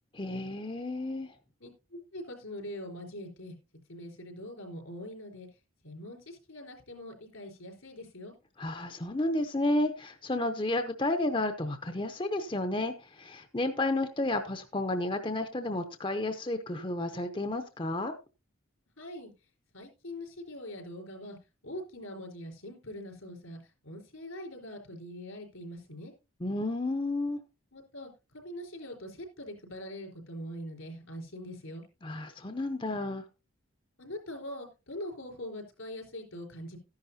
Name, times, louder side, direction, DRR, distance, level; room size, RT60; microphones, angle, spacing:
voice 1, 0.2-1.3 8.6-18.1 26.4-27.4 32.0-33.2, left 2 dB, 25° left, 0.7 m, -31 dB
voice 2, 1.6-3.5 3.9-5.5 5.8-8.3 19.0-19.3 19.7-21.4 21.6-26.1 27.7-31.8 34.0-36.8, left 1 dB, 85° left, 4.3 m, -43 dB
14.0 x 10.5 x 2.8 m
head